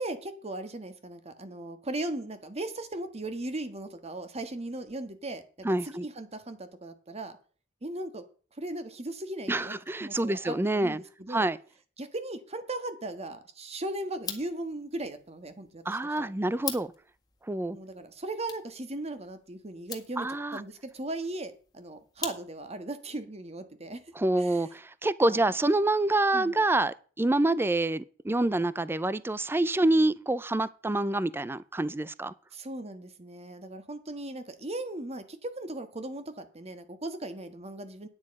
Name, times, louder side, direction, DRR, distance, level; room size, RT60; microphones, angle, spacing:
voice 1, 0.0-7.4 7.8-8.2 8.6-9.7 10.0-11.5 12.0-16.3 17.7-20.3 20.5-24.0 24.4-24.6 25.3-25.4 26.3-26.5 32.5-38.1, right 2 dB, 35° right, 1.4 m, -38 dB
voice 2, 5.6-6.1 9.5-11.0 11.3-11.6 15.9-16.9 17.5-17.8 20.2-20.6 24.2-32.3, right 2 dB, 10° right, 0.4 m, -27 dB
sound 1, 14.1-22.8, left 6 dB, 20° left, 1.7 m, -44 dB
9.7 x 9.6 x 5.3 m
head